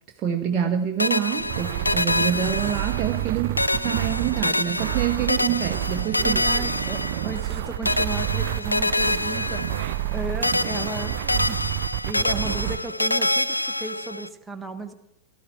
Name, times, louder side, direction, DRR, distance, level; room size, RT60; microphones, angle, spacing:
voice 1, 0.2-6.4, right 9 dB, 30° right, 1 dB, 1.4 m, -26 dB
sound 1, 1.0-3.3 3.6-7.6 7.9-10.2 10.4-14.3, left 1 dB, 85° left, 0.4 m, -26 dB
sound 2, 1.4-12.8, right 14 dB, 50° right, 0.6 m, -29 dB
voice 2, 6.2-9.6 10.1-11.1 11.4-11.6 12.0-14.9, right 2 dB, 10° right, 5 dB, 1.5 m, -34 dB
18.0 x 12.5 x 4.5 m, 0.81 s
figure-of-eight pair, 90°, 0 cm